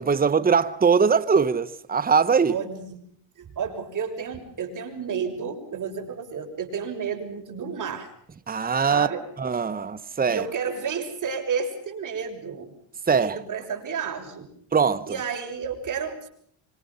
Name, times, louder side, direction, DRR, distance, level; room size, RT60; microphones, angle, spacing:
voice 1, 0.0-2.6 8.5-9.1 9.4-10.5 13.1-13.4 14.7-15.2, right 6 dB, 20° right, 1.2 m, -21 dB
voice 2, 2.5-3.0 3.4-8.1 8.9-9.2 10.3-12.7 13.2-14.5 15.1-16.3, right 6 dB, 45° right, 6.5 m, -31 dB
26.5 x 25.5 x 5.6 m
cardioid pair, 120°, 42 cm